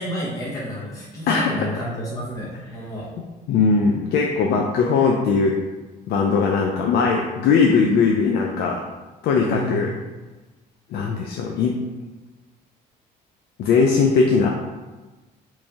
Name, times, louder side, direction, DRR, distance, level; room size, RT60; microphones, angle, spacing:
voice 1, 0.0-3.1 9.5-9.9, equal, 20° left, -8 dB, 1.0 m, -30 dB
voice 2, 3.5-5.5 6.1-8.8 9.2-9.9 10.9-11.7 13.6-14.5, left 5 dB, 70° left, 1 dB, 0.4 m, -19 dB
3.1 x 2.6 x 3.5 m, 1.2 s
cardioid pair, 110°, 17 cm